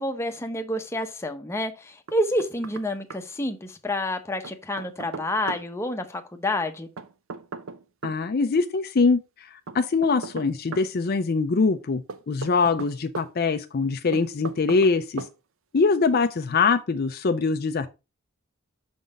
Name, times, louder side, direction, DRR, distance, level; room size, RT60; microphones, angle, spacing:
voice 1, 0.0-6.9, left 1 dB, 15° left, 0.7 m, -29 dB
Knock, 2.1-2.9 3.1-3.2 4.4-5.7 7.0-8.2 9.7-10.9 12.1-13.3 14.1-14.9 15.2-15.3, right 4 dB, 65° right, 0.6 m, -37 dB
voice 2, 8.0-15.3 15.7-17.9, left 4 dB, 45° left, 0.5 m, -23 dB
6.1 x 3.9 x 5.2 m
head